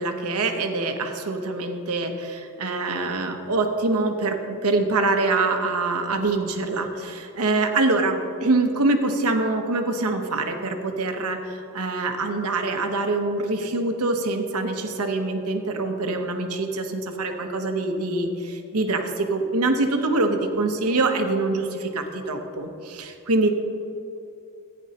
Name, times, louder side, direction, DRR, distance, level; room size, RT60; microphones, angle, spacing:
voice 1, 0.0-23.5, right 2 dB, 85° right, 5 dB, 1.0 m, -24 dB
14.5 x 9.7 x 2.9 m, 2.8 s
head